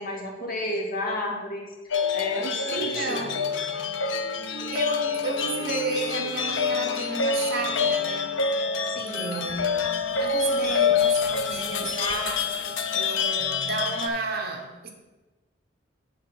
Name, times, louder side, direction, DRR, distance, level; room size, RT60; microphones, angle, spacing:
voice 1, 0.0-1.7 2.1-3.3 8.9-9.4, left 1 dB, 50° left, 1.9 m, -32 dB
sound 1, 1.9-14.1, left 5 dB, 85° left, 0.7 m, -27 dB
voice 2, 2.7-3.4 4.7-8.4 9.1-12.6 12.9-14.9, right 3 dB, 55° right, 1.2 m, -32 dB
9.2 x 4.0 x 7.2 m
head